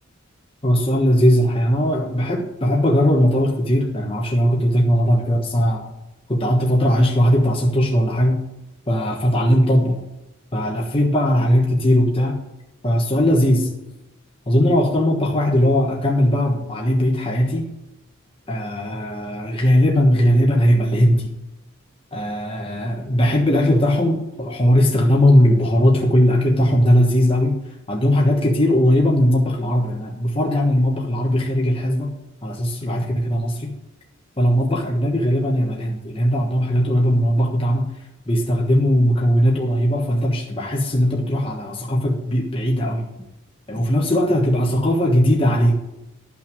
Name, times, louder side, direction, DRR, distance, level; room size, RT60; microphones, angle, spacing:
voice 1, 0.6-5.9 6.3-8.4 8.9-10.0 10.5-12.4 12.8-13.7 14.5-17.6 18.5-21.3 22.1-27.6 27.9-32.1 32.4-33.7 34.4-37.9 38.3-43.0 43.7-45.7, equal, 25° left, -1 dB, 1.4 m, -18 dB
12.5 x 6.1 x 6.2 m, 0.94 s
head